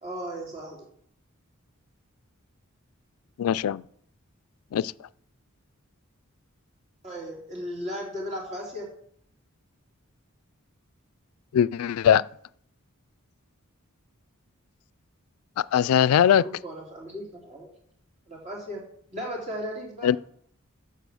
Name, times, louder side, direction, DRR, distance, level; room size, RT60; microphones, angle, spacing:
voice 1, 0.0-0.8 7.0-8.9 16.0-17.7 18.3-18.8 19.1-20.2, equal, 30° right, 3.2 m, -36 dB
voice 2, 3.4-3.8 4.7-4.9 11.5-12.2 15.6-16.4 20.0-20.2, left 9 dB, 90° left, 0.3 m, -20 dB
8.1 x 6.7 x 7.0 m
head